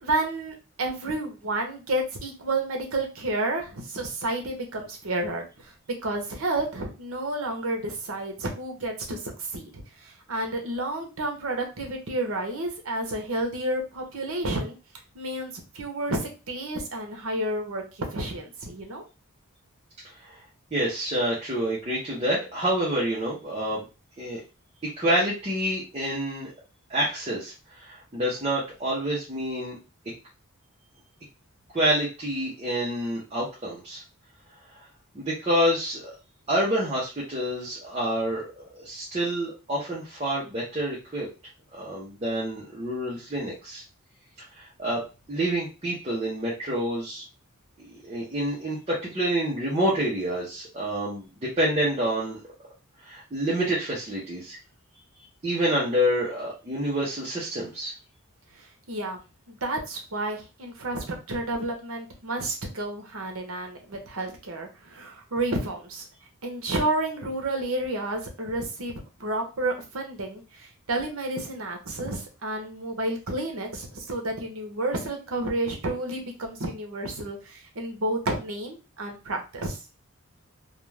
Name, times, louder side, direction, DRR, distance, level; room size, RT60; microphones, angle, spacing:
voice 1, 0.0-5.7 6.0-14.8 15.1-19.0 58.5-59.2 59.5-66.0 66.4-79.8, right 2 dB, 70° right, 3 dB, 0.8 m, -31 dB
voice 2, 20.7-23.8 24.2-24.4 25.0-26.5 26.9-29.8 31.7-34.0 35.1-36.1 36.5-41.3 41.7-43.8 44.6-45.0 45.3-47.2 48.0-52.4 53.0-54.6 55.4-57.9, right 1 dB, 30° right, -7 dB, 0.7 m, -27 dB
2.4 x 2.3 x 3.2 m, 0.30 s
head